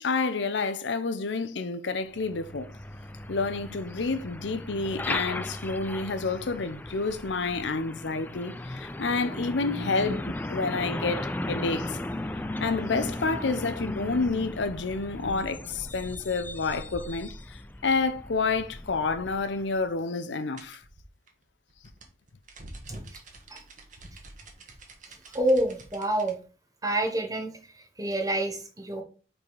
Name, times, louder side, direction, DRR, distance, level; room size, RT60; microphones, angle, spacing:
voice 1, 0.0-2.7 3.3-12.0 12.6-20.8, left 4 dB, 80° left, 0.6 m, -29 dB
Truck, 2.1-19.8, left 1 dB, 10° left, 0.4 m, -36 dB
sound 1, 20.6-26.3, right 2 dB, 45° right, 1.4 m, -47 dB
voice 2, 25.3-26.4 26.8-27.5 28.0-29.0, right 1 dB, 20° right, 1.2 m, -27 dB
5.1 x 4.9 x 5.3 m
head